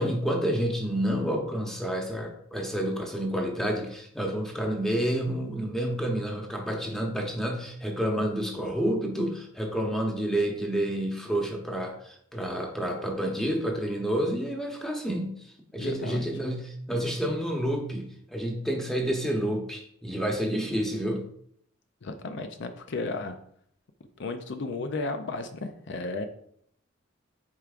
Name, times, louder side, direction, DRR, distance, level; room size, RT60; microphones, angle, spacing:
voice 1, 0.0-21.3, equal, ahead, 1 dB, 0.9 m, -29 dB
voice 2, 15.8-16.3 22.0-23.3 24.2-26.2, left 3 dB, 60° left, 7 dB, 0.5 m, -34 dB
8.3 x 4.5 x 2.5 m, 0.67 s
head